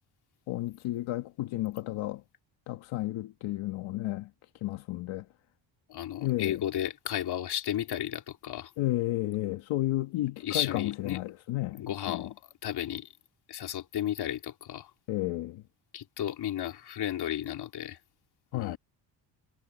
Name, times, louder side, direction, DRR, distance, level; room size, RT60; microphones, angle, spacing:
voice 1, 0.5-2.2 2.7-4.3 4.6-5.2 6.2-6.6 8.8-12.3 15.1-15.6 18.5-18.8, left 16 dB, 90° left, 1.5 m, -32 dB
voice 2, 5.9-8.7 10.4-11.2 11.7-12.3 12.6-13.1 13.5-14.9 15.9-18.0 18.5-18.8, left 11 dB, 55° left, 3.3 m, -33 dB
cardioid pair, 160°, 45 cm